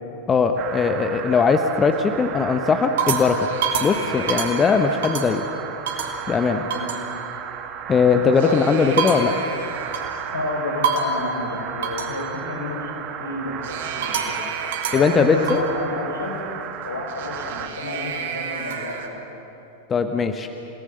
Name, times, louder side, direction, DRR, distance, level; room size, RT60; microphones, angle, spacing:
voice 1, 0.3-3.5 3.8-5.5 6.3-6.6 7.9-9.3 14.9-15.6 19.9-20.5, left 5 dB, 20° left, 7 dB, 1.1 m, -19 dB
sound 1, 0.5-1.2 1.8-2.2 2.6-5.5 5.9-6.2 6.7-7.0 8.2-10.3 10.8-11.3 11.8-12.2 13.6-15.7 17.1-19.1, right 5 dB, 55° right, 2.3 m, -28 dB
sound 2, 0.6-17.7, right 8 dB, 35° right, 1.6 m, -34 dB
voice 2, 10.3-12.9 13.2-14.4 14.9-16.4 16.8-19.2, left 2 dB, 75° left, 0 dB, 4.9 m, -30 dB
29.0 x 18.5 x 6.6 m, 3.0 s
figure-of-eight pair, 90°, 0 cm